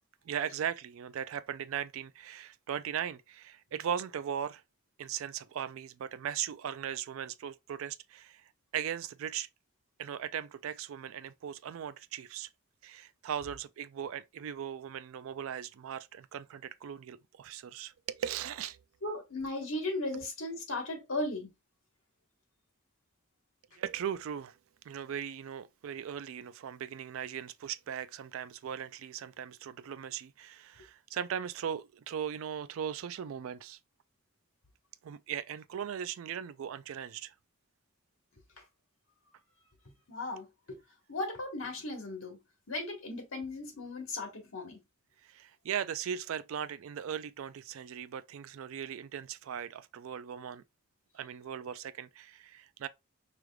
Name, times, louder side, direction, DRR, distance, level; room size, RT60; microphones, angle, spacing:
voice 1, 0.3-4.6 5.0-9.5 10.0-12.5 12.8-18.8 20.1-20.2 23.8-24.6 24.8-33.8 35.0-37.3 45.2-50.6 51.1-52.9, right 8 dB, 80° right, 0.3 m, -38 dB
voice 2, 19.0-21.5 39.8-40.8 41.1-42.4 42.7-44.8, left 2 dB, 80° left, 1.4 m, -37 dB
4.9 x 3.2 x 2.3 m
head